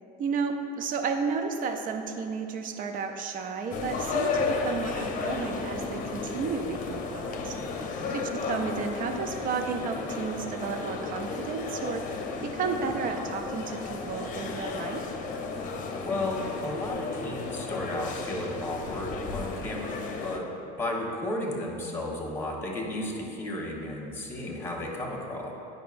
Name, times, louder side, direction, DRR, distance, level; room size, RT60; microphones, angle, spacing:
voice 1, 0.2-7.6 8.1-15.0, right 5 dB, 45° right, 6 dB, 0.6 m, -32 dB
sound 1, 3.7-20.4, left 4 dB, 40° left, 0.7 m, -33 dB
voice 2, 16.0-20.5 20.8-25.5, left 1 dB, 10° left, -2 dB, 1.4 m, -33 dB
9.1 x 5.5 x 2.6 m, 2.8 s
supercardioid pair, 105°, 20 cm